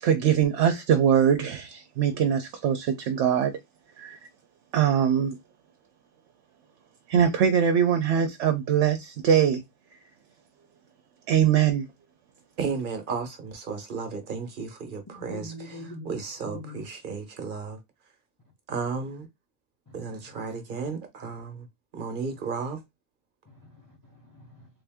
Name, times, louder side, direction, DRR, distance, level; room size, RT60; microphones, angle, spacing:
voice 1, 0.0-3.5 4.0-4.2 4.7-5.4 7.1-9.6 11.3-11.9, right 8 dB, 75° right, 0.9 m, -22 dB
voice 2, 12.6-17.8 18.7-19.3 19.9-21.7 21.9-22.8, right 5 dB, 45° right, 1.0 m, -34 dB
voice 3, 15.2-16.2 16.4-16.8 19.9-20.2 23.5-24.7, left 1 dB, 20° left, 0.7 m, -43 dB
3.5 x 2.5 x 3.5 m
omnidirectional pair, 1.2 m